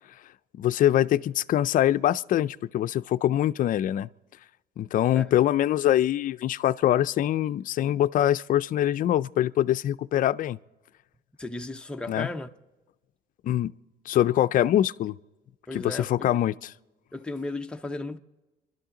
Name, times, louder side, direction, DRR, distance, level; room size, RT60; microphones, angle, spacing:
voice 1, 0.6-4.1 4.8-10.6 12.1-12.3 13.4-13.7 14.1-15.1 15.7-16.5, left 12 dB, 55° left, 0.5 m, -24 dB
voice 2, 11.4-12.5 15.7-16.3 17.1-18.2, left 2 dB, 5° left, 0.7 m, -35 dB
28.0 x 12.0 x 3.8 m
cardioid pair, 110°, 17 cm